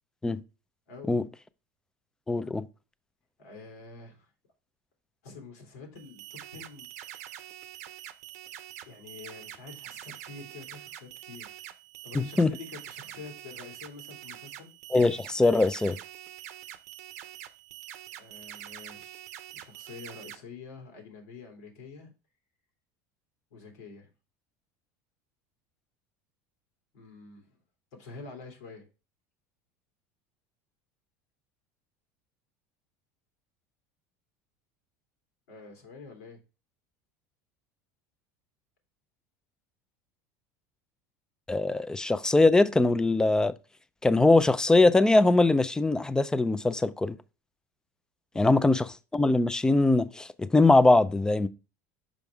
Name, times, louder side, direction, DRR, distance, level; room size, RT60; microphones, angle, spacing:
voice 1, 0.9-1.2 3.4-4.3 5.2-6.9 8.8-11.6 12.0-14.7 18.2-19.3 19.5-22.1 23.5-24.1 26.9-27.6 27.9-28.9 35.5-36.4 48.3-48.7, left 4 dB, 90° left, 2.8 m, -47 dB
voice 2, 2.3-2.7 12.1-12.5 14.9-16.0 41.5-43.5 44.0-47.2 48.4-48.9 49.1-51.5, left 2 dB, 10° left, 0.5 m, -22 dB
sound 1, 6.0-20.4, right 12 dB, 85° right, 0.7 m, -45 dB
6.3 x 5.2 x 3.4 m
supercardioid pair, 110°, 8 cm